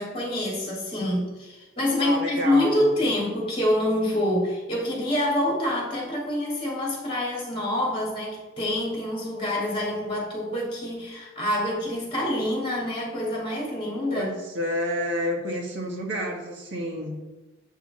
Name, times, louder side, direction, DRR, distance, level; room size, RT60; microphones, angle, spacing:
voice 1, 0.0-14.3, left 1 dB, 30° left, -3 dB, 2.7 m, -26 dB
voice 2, 2.0-2.8 14.1-17.2, equal, 65° right, 0 dB, 1.6 m, -29 dB
8.1 x 4.9 x 4.3 m, 1.2 s
head